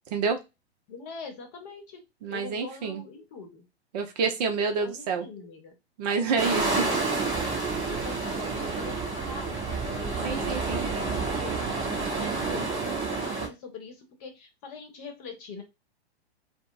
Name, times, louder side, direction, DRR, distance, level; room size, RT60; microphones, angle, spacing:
voice 1, 0.9-2.0 2.3-3.7 4.8-5.7 7.9-15.6, left 5 dB, 35° left, 4 dB, 1.0 m, -43 dB
voice 2, 2.2-3.0 3.9-5.3 6.0-6.9 10.2-10.9, right 5 dB, 40° right, 5 dB, 0.6 m, -28 dB
sound 1, 6.4-13.5, right 4 dB, 10° right, 1.0 m, -29 dB
2.3 x 2.1 x 3.7 m, 0.24 s
figure-of-eight pair, 115°, 33 cm